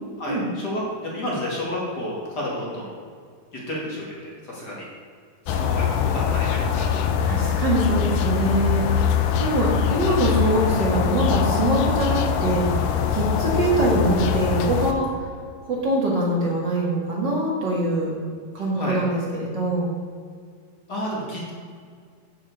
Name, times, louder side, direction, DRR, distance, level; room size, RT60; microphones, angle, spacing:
voice 1, 0.2-0.8 1.1-2.9 3.7-4.2 4.4-4.9 5.5-7.0 8.3-8.5 14.7-14.8 18.7-19.0 20.9-21.5, left 1 dB, 30° left, -4 dB, 2.3 m, -31 dB
sound 1, 5.5-14.9, left 7 dB, 75° left, 2.0 m, -23 dB
voice 2, 7.2-8.8 9.4-12.8 13.1-15.3 15.6-18.1 18.5-19.9, right 1 dB, 40° right, -3 dB, 1.7 m, -23 dB
8.8 x 7.2 x 7.2 m, 2.1 s
omnidirectional pair, 4.3 m